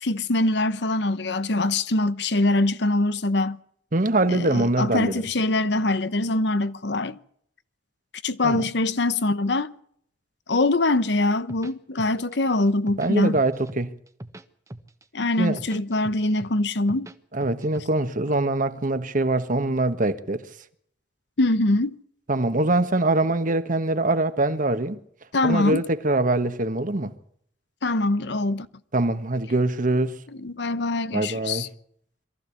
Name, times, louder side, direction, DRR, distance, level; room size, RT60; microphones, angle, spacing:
voice 1, 0.0-3.6 4.3-7.2 8.2-9.8 10.5-13.4 15.1-17.1 21.4-22.0 25.3-25.8 27.8-28.7 30.4-31.7, left 2 dB, 70° left, 1.0 m, -23 dB
voice 2, 3.9-5.3 8.4-8.6 13.0-13.9 15.4-15.6 17.3-20.5 22.3-25.0 25.4-27.1 28.9-30.2 31.1-31.7, right 2 dB, 50° right, 1.4 m, -23 dB
sound 1, 11.3-12.3 12.7-13.8 14.1-15.0 15.4-17.2 17.4-18.3, right 1 dB, 20° right, 1.2 m, -41 dB
22.5 x 14.5 x 8.4 m
head